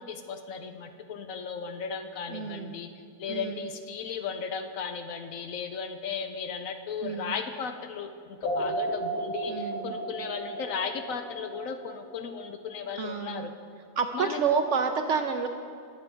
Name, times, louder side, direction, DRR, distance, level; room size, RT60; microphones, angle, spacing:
voice 1, 0.0-2.9 3.2-13.5 14.1-14.4, left 6 dB, 65° left, 7 dB, 1.0 m, -36 dB
voice 2, 2.3-2.7 3.3-3.7 7.0-7.3 9.5-10.0 13.0-13.5 14.0-15.5, right 6 dB, 65° right, 6 dB, 0.8 m, -29 dB
sound 1, 8.4-12.4, right 2 dB, 25° left, 3.2 m, -33 dB
21.0 x 7.2 x 4.5 m, 2.5 s
omnidirectional pair, 1.7 m